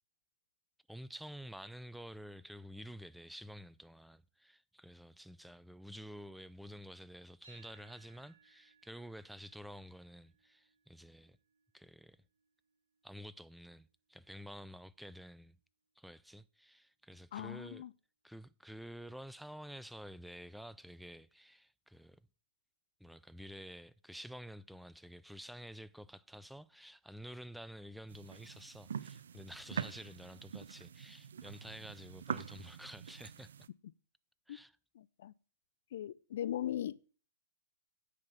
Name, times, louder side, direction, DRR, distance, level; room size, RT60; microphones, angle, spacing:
voice 1, 0.9-11.4 11.7-12.2 13.0-15.6 16.0-17.8 18.2-22.2 23.0-33.5 34.5-34.7, equal, ahead, 0.4 m, -50 dB
sound 1, 7.4-15.6, right 5 dB, 90° right, 3.9 m, -68 dB
voice 2, 17.3-17.9 34.5-34.6 35.0-35.3 35.9-37.1, left 11 dB, 60° left, 0.5 m, -39 dB
sound 2, 28.1-33.7, right 7 dB, 70° right, 0.5 m, -44 dB
9.6 x 6.6 x 5.7 m
figure-of-eight pair, 110°, 0 cm